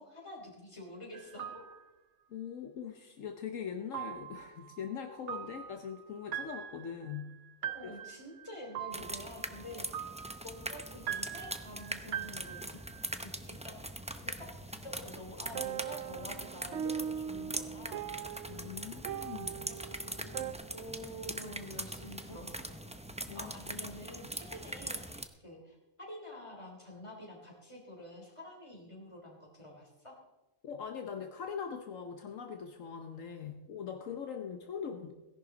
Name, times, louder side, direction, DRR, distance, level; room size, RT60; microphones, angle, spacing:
voice 1, 0.0-1.6 5.4-5.5 7.7-9.8 10.4-12.8 13.2-13.8 14.2-14.5 14.8-18.1 19.7-22.8 23.3-30.2, left 1 dB, 20° left, -1 dB, 3.6 m, -48 dB
sound 1, 1.1-1.8 3.9-13.2 15.5-20.5, right 9 dB, 65° right, 0.9 m, -42 dB
voice 2, 2.3-7.3 7.8-7.9 18.5-19.7 23.3-23.5 30.6-35.1, left 7 dB, 70° left, 4 dB, 1.2 m, -41 dB
sound 2, 8.9-25.2, right 1 dB, 10° right, 0.4 m, -42 dB
18.0 x 11.0 x 3.9 m, 1.0 s
omnidirectional pair, 1.4 m